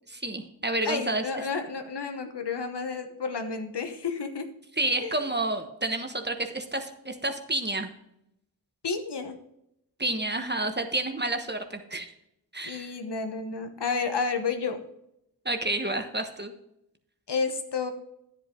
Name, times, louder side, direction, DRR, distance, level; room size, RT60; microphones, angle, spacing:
voice 1, 0.1-1.2 4.8-7.9 10.0-12.1 12.5-12.9 15.4-16.5, right 2 dB, 25° right, 6 dB, 1.2 m, -30 dB
voice 2, 0.8-4.5 5.0-5.2 8.8-9.3 12.6-14.8 17.3-17.9, left 5 dB, 75° left, 7 dB, 1.1 m, -31 dB
10.0 x 8.2 x 3.8 m, 0.79 s
wide cardioid pair, 50°, 41 cm